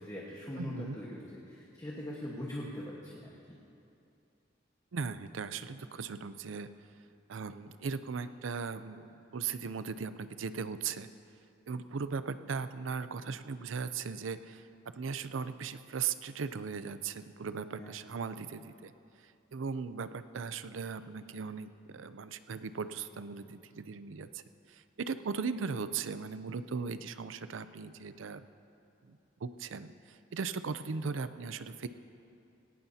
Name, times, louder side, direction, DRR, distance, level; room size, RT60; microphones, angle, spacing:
voice 1, 0.0-3.6 17.8-18.0, left 1 dB, 20° left, -4 dB, 1.3 m, -42 dB
voice 2, 0.6-1.0 4.9-6.7 7.3-11.1 11.7-14.6 14.9-18.9 19.5-24.4 24.7-28.4 29.1-29.9 30.3-31.9, right 5 dB, 85° right, 12 dB, 0.5 m, -38 dB
18.0 x 17.5 x 2.8 m, 2.7 s
head